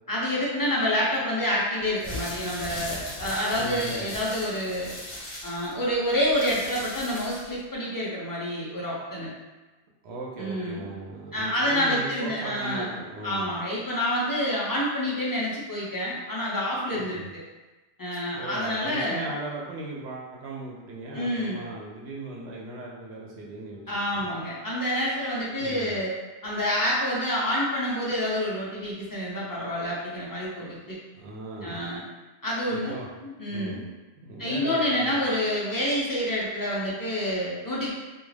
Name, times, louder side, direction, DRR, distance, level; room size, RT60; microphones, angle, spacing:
voice 1, 0.1-4.9 5.4-9.3 10.4-10.8 11.3-13.0 13.2-17.4 18.0-19.3 21.1-21.6 23.9-26.1 26.4-31.0 31.6-32.0 32.4-32.9 33.2-33.8 34.4-37.9, equal, 30° left, -6 dB, 0.4 m, -28 dB
sound 1, 1.9-7.6, left 1 dB, 45° left, 0.9 m, -38 dB
voice 2, 3.5-4.1 10.0-13.5 16.9-17.3 18.3-23.8 24.1-24.3 25.6-25.9 31.1-31.9 32.7-33.1 33.5-33.8 34.2-35.1, right 2 dB, 80° right, -3 dB, 0.9 m, -38 dB
2.4 x 2.3 x 3.2 m, 1.1 s
omnidirectional pair, 1.1 m